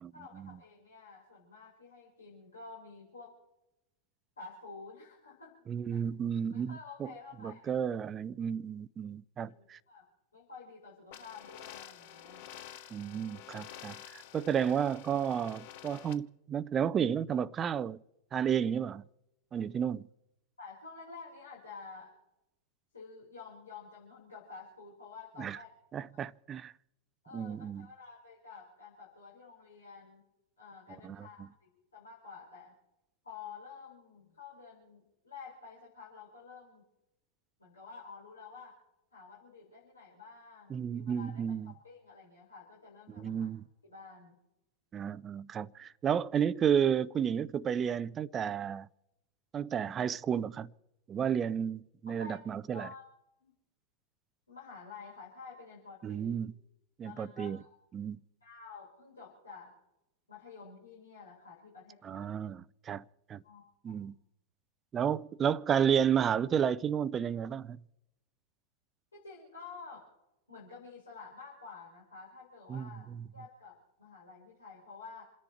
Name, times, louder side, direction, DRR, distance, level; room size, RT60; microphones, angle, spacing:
voice 1, 0.1-3.3 4.4-5.6 5.9-6.0 6.5-7.7 9.5-10.1 10.3-12.5 20.6-22.1 22.9-25.7 27.2-30.2 30.6-32.7 33.2-36.8 37.6-38.8 39.1-43.5 43.8-44.4 52.1-52.4 52.7-53.0 53.4-53.5 54.5-56.3 57.0-57.7 58.4-59.7 60.3-62.3 63.4-64.1 69.1-70.1 70.5-73.1 73.3-75.3, left 5 dB, 75° left, 5.0 m, -50 dB
voice 2, 5.7-7.1 7.4-9.8 12.9-18.0 18.3-19.0 19.5-20.0 25.4-25.6 25.9-26.7 27.3-27.9 31.0-31.3 40.7-41.7 43.2-43.6 44.9-48.9 49.5-50.7 51.1-52.9 56.0-56.5 57.0-57.6 57.9-58.2 62.0-63.0 63.3-63.4 63.8-64.1 64.9-67.8 72.7-73.2, right 8 dB, 25° right, 0.5 m, -32 dB
sound 1, 11.1-16.1, left 11 dB, 50° left, 1.2 m, -49 dB
28.5 x 10.5 x 4.5 m
figure-of-eight pair, 90°, 0 cm